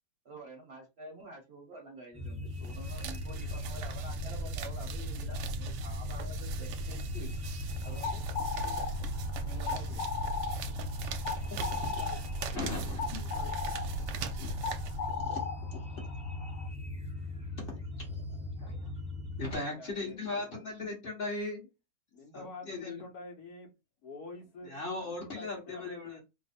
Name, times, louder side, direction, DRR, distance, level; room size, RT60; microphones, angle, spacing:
voice 1, 0.2-7.4 7.8-8.2 8.6-8.9 9.4-10.0 11.1-11.2 11.5-11.8 17.2-17.3, right 2 dB, 45° right, 0.9 m, -48 dB
sound 1, 2.1-19.5, left 2 dB, 5° right, 0.4 m, -39 dB
sound 2, 2.5-15.4, right 3 dB, 80° right, 1.2 m, -39 dB
sound 3, 7.8-16.7, left 5 dB, 85° left, 1.3 m, -38 dB
voice 2, 11.7-12.3 18.3-18.6 19.4-20.6 22.1-23.7 24.0-24.7 25.0-26.2, left 3 dB, 65° left, 1.3 m, -48 dB
voice 3, 12.5-13.6 14.4-14.5 15.1-15.5 15.7-15.8 17.6-18.1 19.4-21.6 22.3-23.0 24.7-26.1, left 2 dB, 35° left, 1.2 m, -38 dB
3.1 x 2.0 x 4.1 m
omnidirectional pair, 1.8 m